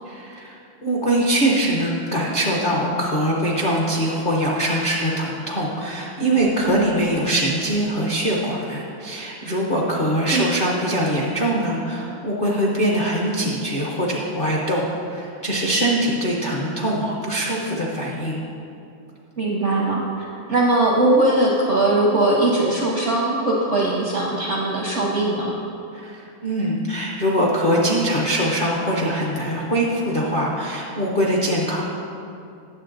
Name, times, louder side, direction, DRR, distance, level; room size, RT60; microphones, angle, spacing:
voice 1, 0.0-18.4 25.9-31.8, right 1 dB, 55° left, -5 dB, 0.6 m, -22 dB
voice 2, 19.4-25.5, right 2 dB, 60° right, -3 dB, 0.7 m, -20 dB
8.8 x 7.2 x 3.9 m, 2.6 s
omnidirectional pair, 2.2 m